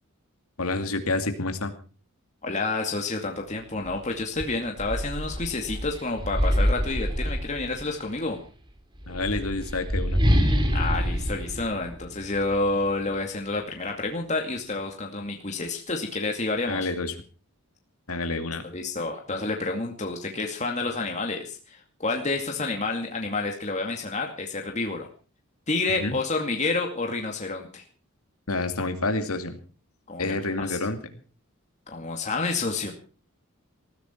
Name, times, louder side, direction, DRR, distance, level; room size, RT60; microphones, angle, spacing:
voice 1, 0.6-1.7 9.1-10.2 16.7-17.1 18.1-18.6 26.0-26.2 28.5-29.6 30.2-31.0, left 2 dB, 85° left, 6 dB, 2.5 m, -28 dB
voice 2, 2.4-8.4 10.7-16.9 18.6-25.1 25.7-27.8 30.1-30.8 31.9-32.9, left 3 dB, 35° left, 2 dB, 2.4 m, -29 dB
sound 1, 3.8-4.0 4.4-8.0 8.9-12.6, equal, 20° right, 2.9 m, -26 dB
19.5 x 15.5 x 4.5 m, 0.37 s
head